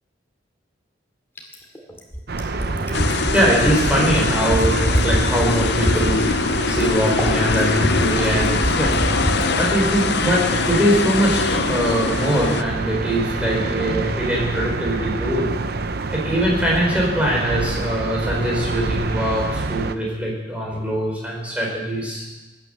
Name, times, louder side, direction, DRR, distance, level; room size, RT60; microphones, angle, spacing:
Fill (with liquid), 1.4-9.5 10.8-10.9, equal, 15° left, 2.2 m, -25 dB
sound 1, 2.3-19.9, right 3 dB, 55° right, 0.7 m, -27 dB
voice 1, 2.4-15.5 16.1-22.4, equal, 5° right, -3 dB, 4.6 m, -22 dB
sound 2, 2.9-12.6, left 5 dB, 60° left, 0.6 m, -23 dB
17.5 x 10.0 x 6.7 m, 1.1 s
head